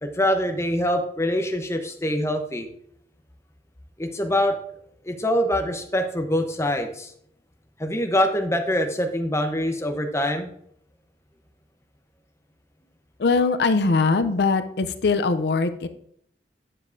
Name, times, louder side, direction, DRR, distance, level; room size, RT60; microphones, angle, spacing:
voice 1, 0.0-2.7 4.0-4.5 5.0-7.1 7.8-10.5, equal, 15° left, 5 dB, 0.8 m, -24 dB
voice 2, 13.2-15.9, left 4 dB, 65° left, 10 dB, 0.5 m, -21 dB
9.7 x 7.2 x 2.6 m, 0.66 s
head